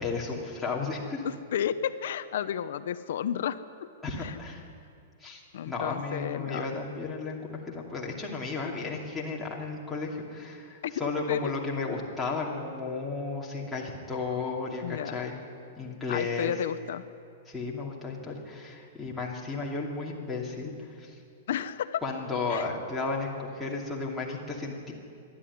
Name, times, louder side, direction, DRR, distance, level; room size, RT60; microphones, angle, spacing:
voice 1, 0.0-1.2 4.0-4.6 5.2-15.3 15.8-16.5 17.5-21.2 22.0-24.9, left 4 dB, 5° left, -5 dB, 2.6 m, -34 dB
voice 2, 1.2-3.6 4.2-4.3 5.5-6.6 10.8-11.5 14.8-15.2 16.1-17.0 21.5-22.0 22.5-22.7, left 9 dB, 60° left, 12 dB, 0.9 m, -32 dB
26.0 x 12.0 x 9.6 m, 2.4 s
supercardioid pair, 170°, 0 cm